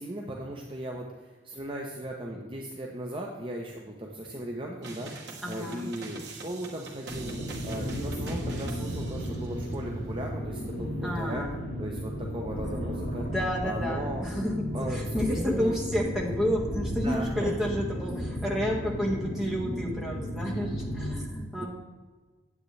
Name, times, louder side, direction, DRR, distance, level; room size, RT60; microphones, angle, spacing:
voice 1, 0.0-11.4 11.8-13.2 13.6-14.2 14.7-15.8 17.0-17.5 21.6-21.7, right 1 dB, 25° right, -1 dB, 0.7 m, -37 dB
sound 1, 4.8-9.8, right 3 dB, 70° right, 1.3 m, -44 dB
voice 2, 5.4-5.9 11.0-11.5 13.1-21.7, equal, 5° right, -4 dB, 1.6 m, -30 dB
sound 2, 7.1-21.2, equal, 65° left, 2.8 m, -34 dB
9.3 x 8.4 x 3.3 m, 1.4 s
head